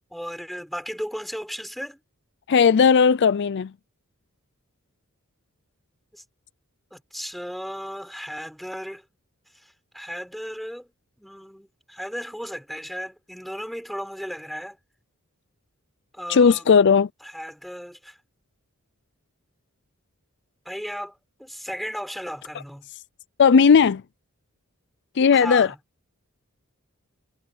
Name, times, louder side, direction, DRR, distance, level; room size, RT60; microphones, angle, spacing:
voice 1, 0.1-2.0 6.1-6.2 6.9-9.0 9.6-10.9 11.2-14.8 16.1-16.6 17.3-18.2 20.6-22.9 25.3-25.8, equal, ahead, 6.0 m, -35 dB
voice 2, 2.5-3.7 16.3-17.1 23.4-24.0 25.2-25.7, left 6 dB, 50° left, 0.4 m, -16 dB
head